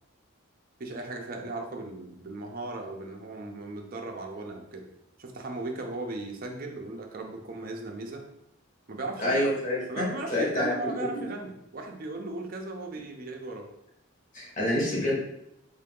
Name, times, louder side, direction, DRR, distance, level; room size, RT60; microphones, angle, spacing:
voice 1, 0.8-4.9 5.2-8.2 8.9-9.6 9.9-13.7, right 2 dB, 45° right, 2 dB, 0.6 m, -37 dB
voice 2, 9.2-10.9 14.3-15.2, left 1 dB, 40° left, -6 dB, 1.4 m, -27 dB
3.8 x 2.8 x 3.6 m, 0.82 s
head